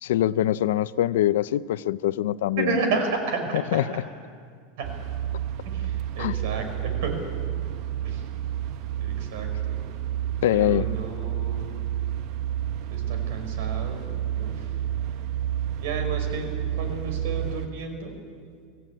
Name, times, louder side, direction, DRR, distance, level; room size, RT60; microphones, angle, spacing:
voice 1, 0.0-2.7 3.7-3.8 6.2-6.3 10.4-10.9, left 13 dB, 85° left, 16 dB, 0.6 m, -23 dB
voice 2, 2.6-3.8 4.8-4.9 5.6-7.3 8.0-8.3 9.0-9.8 10.5-11.7 12.9-14.8 15.8-18.1, right 4 dB, 60° right, 5 dB, 5.0 m, -32 dB
sound 1, 4.8-17.7, right 11 dB, 45° right, 0.9 m, -30 dB
25.0 x 16.0 x 8.8 m, 2.1 s
supercardioid pair, 175°, 0 cm